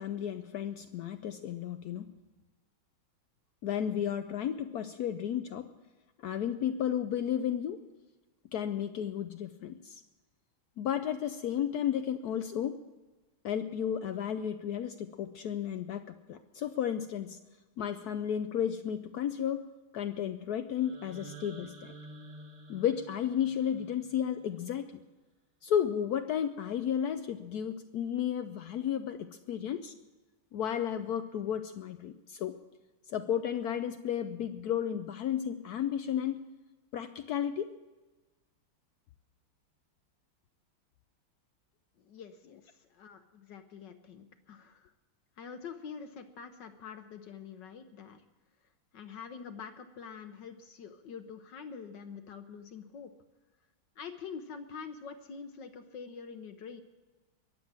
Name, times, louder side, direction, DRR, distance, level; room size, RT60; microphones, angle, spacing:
voice 1, 0.0-2.1 3.6-5.7 6.2-7.8 8.5-10.0 10.8-12.8 13.4-17.4 17.8-19.7 19.9-21.9 22.7-25.0 25.6-29.9 30.5-32.6 33.1-36.4 36.9-37.7, left 9 dB, 90° left, 9 dB, 0.8 m, -33 dB
sound 1, 20.7-24.8, right 2 dB, 25° right, 1.1 m, -51 dB
voice 2, 42.0-44.9 45.4-48.2 48.9-53.1 54.0-56.8, left 6 dB, 65° left, 8 dB, 1.3 m, -46 dB
22.0 x 7.7 x 7.3 m, 1.2 s
omnidirectional pair, 2.3 m